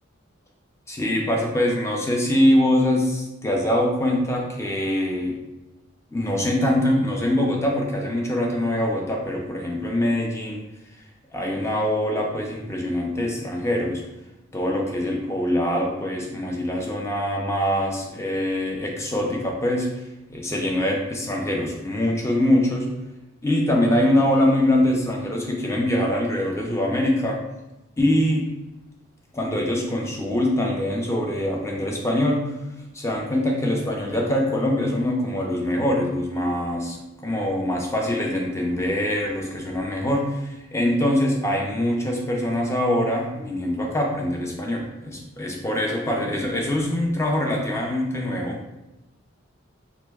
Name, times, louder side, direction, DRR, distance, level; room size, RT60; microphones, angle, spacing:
voice 1, 0.9-5.4 6.1-10.6 11.3-14.0 14.5-19.9 20.3-22.9 23.4-27.4 28.0-28.5 29.3-32.6 32.9-48.6, left 1 dB, 15° left, 0 dB, 0.4 m, -23 dB
3.0 x 2.1 x 3.3 m, 0.99 s
head